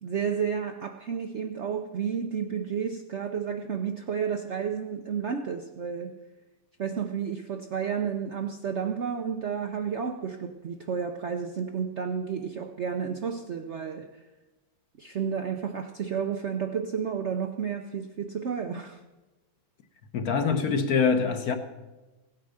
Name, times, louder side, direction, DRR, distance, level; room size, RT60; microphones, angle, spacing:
voice 1, 0.0-6.2 6.8-14.2 15.0-19.0, right 7 dB, 60° right, 0.7 m, -31 dB
voice 2, 20.1-21.5, left 5 dB, 55° left, 1.4 m, -24 dB
16.0 x 8.9 x 6.4 m
omnidirectional pair, 2.0 m